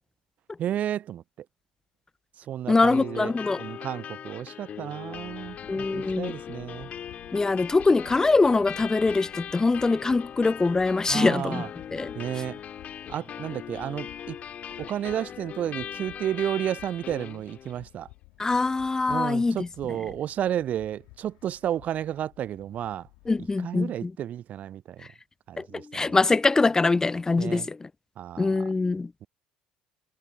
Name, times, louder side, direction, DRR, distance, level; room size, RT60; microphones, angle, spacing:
voice 1, 0.6-1.2 2.5-3.3 3.6-6.9 11.1-11.7 12.2-12.6 13.1-14.4 14.8-18.1 19.1-23.1 23.6-25.0 25.5-26.2 27.4-27.7 28.2-28.7, right 11 dB, 40° right, 0.4 m, -32 dB
voice 2, 2.7-3.6 5.7-6.3 7.3-11.6 11.9-12.1 18.4-19.7 23.3-24.1 25.6-27.9 28.4-29.1, left 3 dB, 15° left, 0.5 m, -23 dB
sound 1, 2.9-17.9, left 9 dB, 40° left, 2.6 m, -40 dB
sound 2, 5.1-23.6, left 26 dB, 60° left, 2.2 m, -54 dB
figure-of-eight pair, 60°, 4 cm